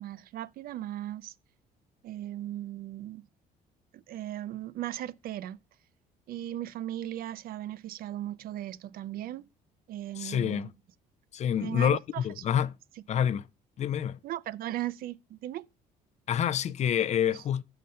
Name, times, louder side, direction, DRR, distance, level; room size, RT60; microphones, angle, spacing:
voice 1, 0.0-1.3 2.0-3.2 3.9-5.6 6.3-9.5 9.9-10.7 11.6-12.6 14.2-15.7 17.3-17.4, right 13 dB, 60° right, 0.4 m, -37 dB
voice 2, 10.2-10.7 11.3-12.7 13.1-13.5 13.8-14.2 16.3-17.6, left 9 dB, 40° left, 0.4 m, -27 dB
5.7 x 5.4 x 6.3 m
cardioid pair, 110°, 17 cm